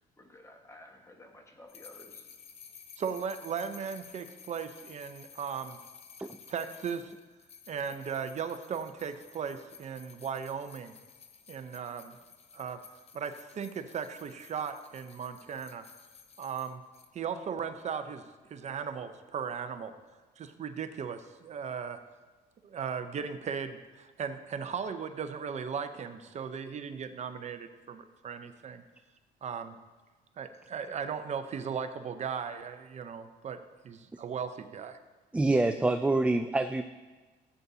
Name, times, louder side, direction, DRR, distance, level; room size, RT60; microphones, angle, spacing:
voice 1, 0.2-2.3, left 1 dB, 15° left, 3 dB, 1.4 m, -53 dB
sound 1, 1.7-17.1, left 6 dB, 40° left, 0.8 m, -54 dB
voice 2, 3.0-5.8 6.5-7.1 7.7-10.9 11.5-12.2 12.5-12.8 13.1-15.9 16.4-16.8 17.1-18.2 18.5-19.9 20.4-22.0 22.6-28.8 29.4-29.8 30.4-33.6 33.8-35.0, right 6 dB, 40° right, 9 dB, 0.7 m, -37 dB
voice 3, 35.3-36.8, right 2 dB, 5° right, 8 dB, 0.3 m, -26 dB
15.0 x 8.2 x 2.8 m, 1.3 s
cardioid pair, 110°, 17 cm